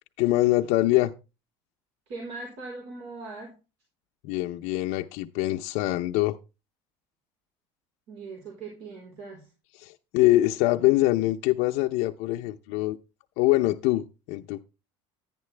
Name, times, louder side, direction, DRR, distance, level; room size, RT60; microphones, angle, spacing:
voice 1, 0.2-1.1 4.2-6.3 9.8-13.0 13.4-14.6, left 17 dB, 75° left, 0.6 m, -24 dB
voice 2, 2.1-3.6 8.1-9.5, right 3 dB, 75° right, 4.0 m, -40 dB
10.5 x 10.5 x 3.3 m
cardioid pair, 125°, 12 cm